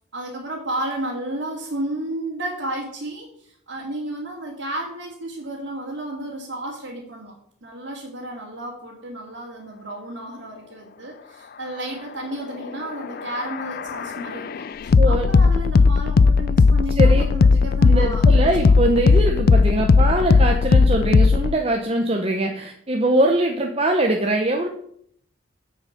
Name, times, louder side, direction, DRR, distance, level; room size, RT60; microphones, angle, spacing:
voice 1, 0.1-7.3 7.6-14.6 15.1-18.5, right 1 dB, 60° right, -6 dB, 2.4 m, -32 dB
sound 1, 12.9-21.5, left 4 dB, 45° left, 0.3 m, -17 dB
voice 2, 17.8-24.7, right 1 dB, 30° right, 3 dB, 0.8 m, -22 dB
8.0 x 7.1 x 6.6 m, 0.66 s
head